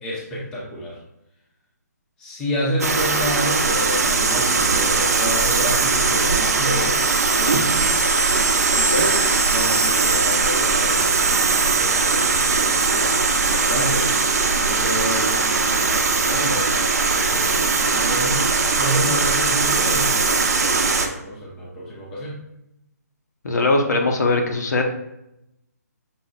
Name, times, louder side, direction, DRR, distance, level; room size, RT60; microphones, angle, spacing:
voice 1, 0.0-1.0 2.2-7.1 7.3-7.9 8.9-14.1 14.6-18.4 18.8-22.4, equal, 5° left, -5 dB, 0.6 m, -29 dB
sound 1, 2.8-21.1, right 4 dB, 60° right, 0.6 m, -20 dB
voice 2, 23.4-24.8, left 2 dB, 75° left, 3 dB, 0.8 m, -20 dB
5.7 x 2.0 x 3.8 m, 0.84 s
hypercardioid pair, 165°, 9 cm